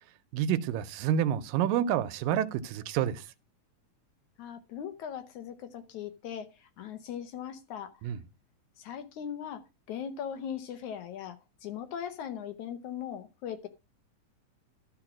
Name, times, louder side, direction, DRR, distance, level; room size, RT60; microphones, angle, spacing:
voice 1, 0.3-3.2 8.0-8.2, right 9 dB, 80° right, 2.3 m, -28 dB
voice 2, 4.4-8.0 8.8-13.7, left 8 dB, 70° left, 2.1 m, -39 dB
13.0 x 4.6 x 6.0 m
omnidirectional pair, 4.0 m